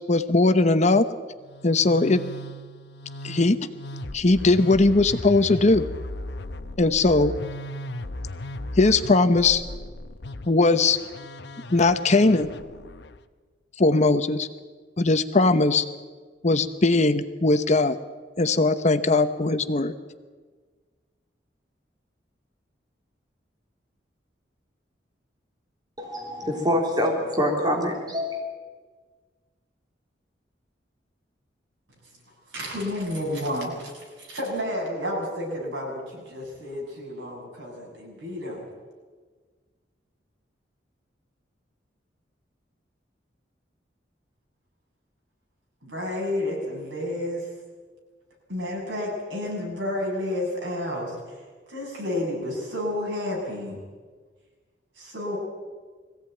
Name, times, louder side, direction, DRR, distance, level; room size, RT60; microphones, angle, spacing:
voice 1, 0.1-1.0 1.6-2.2 3.2-3.6 4.1-5.9 6.8-7.3 8.8-9.6 10.5-11.0 11.7-12.5 13.8-14.5 15.0-15.8 16.4-18.0 18.4-19.9, left 3 dB, 40° left, 10 dB, 0.9 m, -19 dB
Musical instrument, 1.4-13.2, left 1 dB, 65° left, 0.9 m, -37 dB
voice 2, 26.0-28.4, equal, 25° right, 1 dB, 3.2 m, -25 dB
voice 3, 32.5-38.7 45.8-47.5 48.5-51.2 51.7-53.8 55.0-55.4, left 1 dB, 85° right, -1 dB, 6.9 m, -31 dB
21.5 x 16.0 x 9.1 m, 1.5 s
head